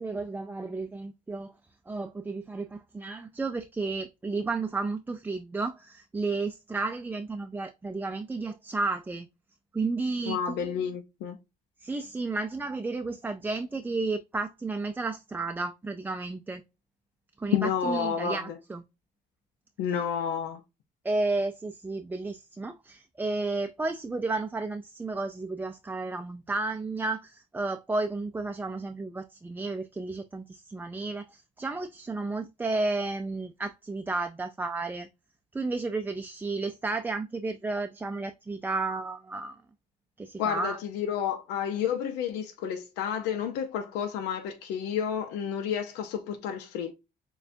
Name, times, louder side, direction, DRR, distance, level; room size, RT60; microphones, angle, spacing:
voice 1, 0.0-1.5 1.9-9.3 9.7-10.7 11.8-16.6 17.4-18.8 21.0-35.1 35.5-39.6 40.2-40.8, right 3 dB, 10° right, 0.4 m, -32 dB
voice 2, 10.3-11.4 17.5-18.6 19.8-20.6 40.4-46.9, left 8 dB, 90° left, 0.7 m, -30 dB
6.6 x 2.3 x 2.6 m
cardioid pair, 110°, 17 cm